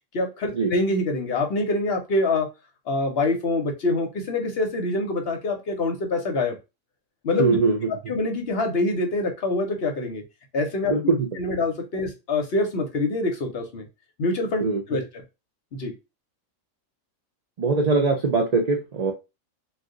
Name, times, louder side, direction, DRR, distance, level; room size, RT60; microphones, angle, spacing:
voice 1, 0.1-2.5 2.9-6.6 7.2-7.6 8.1-10.2 10.5-13.9 14.2-15.0 15.7-15.9, left 2 dB, 55° left, 4 dB, 0.8 m, -25 dB
voice 2, 7.4-7.8 10.9-11.6 14.6-14.8 17.6-19.1, right 4 dB, 65° right, 1 dB, 0.4 m, -22 dB
2.7 x 2.3 x 3.7 m, 0.26 s
omnidirectional pair, 1.4 m